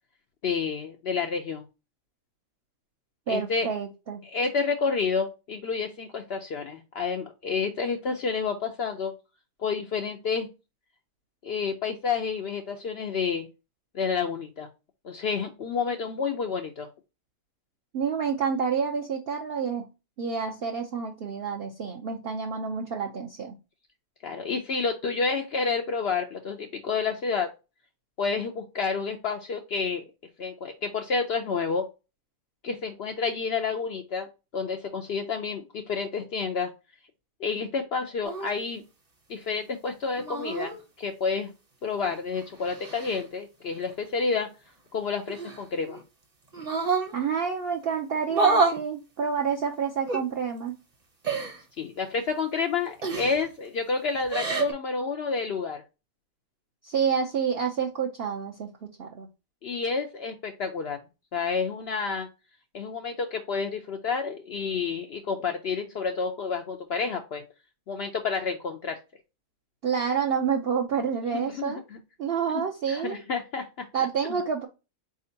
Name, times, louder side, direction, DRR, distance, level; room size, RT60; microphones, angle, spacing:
voice 1, 0.4-1.6 3.3-3.7 4.2-9.1 9.6-10.5 11.4-13.5 13.9-14.7 15.0-16.9 24.2-27.5 28.2-30.0 30.4-31.9 32.6-34.3 34.5-36.7 37.4-38.8 39.3-41.5 41.8-44.5 44.9-46.0 51.8-55.8 59.6-61.0 61.3-62.3 62.7-67.4 67.9-69.0 71.3-72.0 72.9-73.7, left 5 dB, 90° left, 4 dB, 0.5 m, -29 dB
voice 2, 3.3-4.2 17.9-19.9 20.2-23.5 47.1-50.8 56.8-59.3 69.8-71.8 72.2-73.2 73.9-74.7, right 6 dB, 75° right, 1 dB, 0.5 m, -28 dB
sound 1, 38.2-38.5 40.2-40.8 42.1-43.2 45.3-46.0 46.5-47.1 48.3-48.8 50.1-50.2 51.2-51.6 53.0-53.5 54.2-54.7, right 4 dB, 35° right, 0.6 m, -27 dB
4.2 x 3.7 x 2.6 m, 0.28 s
omnidirectional pair, 1.7 m